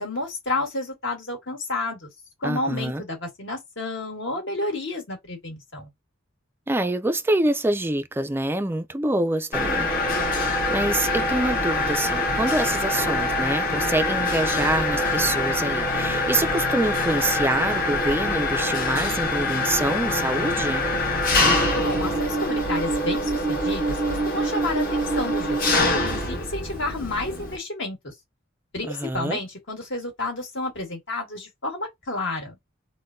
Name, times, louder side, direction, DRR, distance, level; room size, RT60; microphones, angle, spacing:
voice 1, 0.0-2.1 2.4-5.9 21.7-28.1 28.7-32.5, left 2 dB, 60° left, 1.6 m, -30 dB
voice 2, 2.4-3.0 6.7-9.9 10.7-20.9 28.8-29.4, right 1 dB, 10° right, 0.3 m, -26 dB
Mechanisms, 9.5-27.6, left 1 dB, 45° left, 1.0 m, -24 dB
3.6 x 2.2 x 2.5 m
head